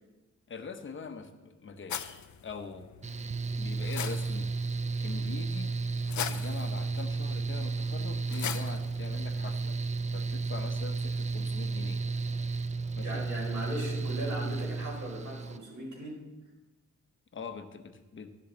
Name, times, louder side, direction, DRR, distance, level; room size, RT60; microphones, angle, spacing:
voice 1, 0.5-2.9 3.6-4.7 5.0-5.7 6.3-9.8 10.1-12.0 13.0-13.2 17.3-18.3, left 5 dB, 40° left, 8 dB, 0.9 m, -43 dB
sound 1, 1.9-9.5, left 9 dB, 75° left, 0.6 m, -42 dB
Mechanical fan, 3.0-15.6, right 4 dB, 25° right, 0.4 m, -33 dB
voice 2, 13.0-16.2, right 1 dB, 80° right, -3 dB, 4.6 m, -38 dB
12.5 x 10.5 x 3.9 m, 1.1 s
wide cardioid pair, 160°, 29 cm